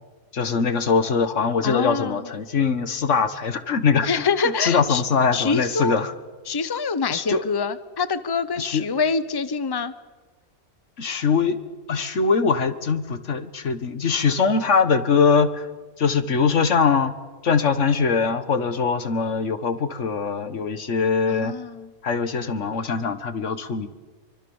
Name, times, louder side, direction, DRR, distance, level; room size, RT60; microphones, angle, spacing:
voice 1, 0.3-4.2 4.6-6.1 7.1-7.4 8.6-8.9 11.0-11.6 11.9-15.7 16.0-17.1 17.4-21.6 22.0-23.9, left 5 dB, 85° left, 12 dB, 1.7 m, -22 dB
voice 2, 1.6-2.3 4.0-5.0 5.3-6.0 6.5-9.9 21.3-21.9, left 5 dB, 20° left, 14 dB, 0.8 m, -25 dB
26.5 x 24.0 x 7.2 m, 1.3 s
omnidirectional pair, 1.2 m